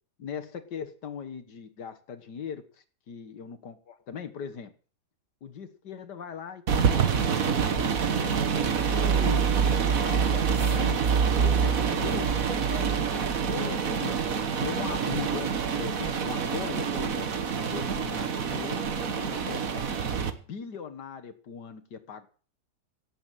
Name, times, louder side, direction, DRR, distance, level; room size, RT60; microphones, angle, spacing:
voice 1, 0.2-2.6 3.1-4.7 5.4-9.5 10.0-14.2 14.6-17.3 17.6-18.9 19.1-19.9 20.3-22.3, left 6 dB, 90° left, 8 dB, 2.0 m, -39 dB
sound 1, 6.7-20.3, right 6 dB, 55° right, 1.7 m, -26 dB
17.5 x 8.0 x 7.5 m, 0.41 s
omnidirectional pair, 1.8 m